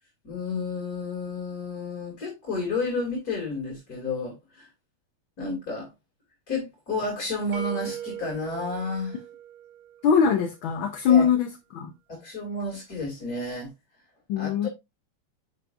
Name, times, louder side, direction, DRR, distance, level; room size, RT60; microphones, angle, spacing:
voice 1, 0.2-4.7 5.4-5.9 6.5-9.2 11.1-11.3 12.1-13.7 14.4-14.7, left 3 dB, 45° left, 3.1 m, -31 dB
sound 1, 7.5-10.4, right 10 dB, 70° right, 2.0 m, -39 dB
voice 2, 10.0-11.9 14.3-14.7, left 7 dB, 70° left, 1.6 m, -22 dB
10.5 x 6.0 x 2.5 m
omnidirectional pair, 2.4 m